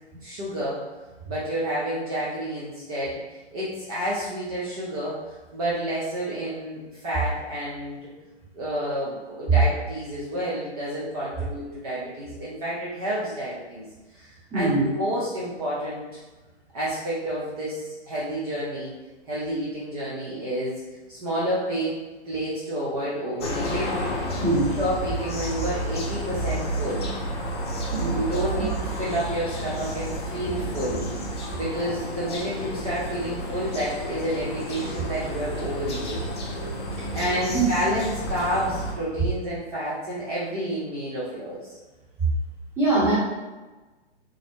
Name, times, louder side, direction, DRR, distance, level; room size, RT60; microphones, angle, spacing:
voice 1, 0.2-0.8 1.3-5.2 5.5-8.0 8.5-13.8 14.1-16.0 16.7-18.9 19.3-20.7 21.1-21.9 22.2-24.0 24.8-27.1 28.1-31.0 31.5-36.3 37.1-41.8, equal, 35° right, -8 dB, 0.7 m, -29 dB
voice 2, 14.5-14.9 24.4-24.8 27.9-28.2 37.5-37.6 42.8-43.2, right 2 dB, 5° right, -10 dB, 1.0 m, -22 dB
sound 1, 23.4-38.9, equal, 25° left, 0.3 m, -31 dB
3.8 x 2.0 x 3.0 m, 1.2 s
figure-of-eight pair, 125°, 34 cm